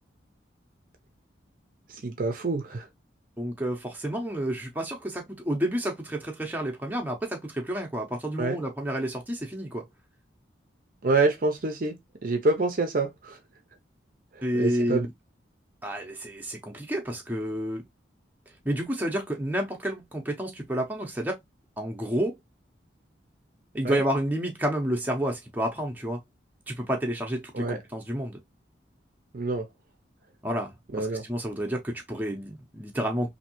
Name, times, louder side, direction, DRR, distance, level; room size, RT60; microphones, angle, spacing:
voice 1, 1.9-2.9 8.4-8.6 11.0-13.4 14.3-15.1 23.8-24.0 27.5-27.8 29.3-29.7 30.9-31.2, right 3 dB, 45° right, 0.5 m, -27 dB
voice 2, 3.4-9.8 14.4-15.1 15.8-17.8 18.6-21.4 21.8-22.3 23.7-26.2 26.7-28.4 30.4-33.3, equal, 10° right, 0.7 m, -30 dB
3.2 x 2.6 x 2.9 m
head